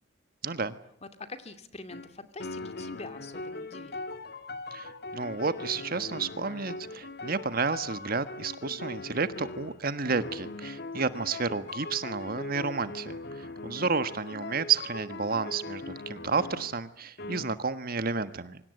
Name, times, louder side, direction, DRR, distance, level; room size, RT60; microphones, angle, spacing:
voice 1, 0.4-0.8 4.7-18.6, right 4 dB, 50° right, 12 dB, 1.4 m, -31 dB
voice 2, 1.0-4.1, left 3 dB, 35° left, 9 dB, 2.4 m, -44 dB
sound 1, 1.9-2.1 2.4-16.8 17.2-17.5, left 2 dB, 60° left, 1.9 m, -40 dB
28.0 x 24.5 x 8.1 m, 0.68 s
head